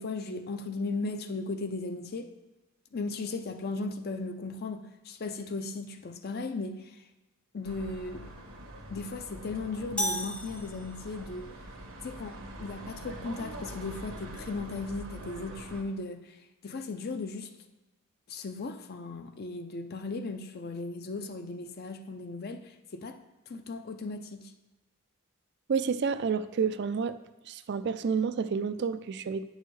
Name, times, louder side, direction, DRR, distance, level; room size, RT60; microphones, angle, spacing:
voice 1, 0.0-2.4 2.9-7.0 7.5-8.3 8.9-11.5 12.0-16.4 16.6-17.5 18.3-23.2 23.5-24.4, left 3 dB, 50° left, 8 dB, 0.5 m, -36 dB
sound 1, 7.6-15.8, right 1 dB, 75° right, 1.2 m, -44 dB
sound 2, 10.0-11.4, equal, 5° left, 0.6 m, -34 dB
voice 2, 25.7-27.2 27.5-29.5, right 6 dB, 55° right, 12 dB, 0.4 m, -29 dB
9.0 x 6.4 x 3.2 m, 1.1 s
head